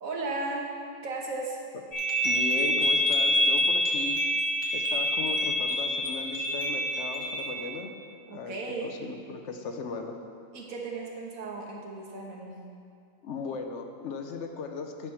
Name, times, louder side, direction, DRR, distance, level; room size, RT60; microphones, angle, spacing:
voice 1, 0.0-0.7 1.0-1.6 8.3-8.9 10.5-12.6, right 3 dB, 90° right, -1 dB, 1.6 m, -35 dB
sound 1, 1.9-7.5, equal, 45° left, 1.3 m, -26 dB
voice 2, 2.2-4.2 4.7-7.9 8.3-8.6 8.8-10.2 13.2-15.1, left 4 dB, 65° left, 5 dB, 1.0 m, -37 dB
10.5 x 4.8 x 5.8 m, 2.3 s
omnidirectional pair, 1.4 m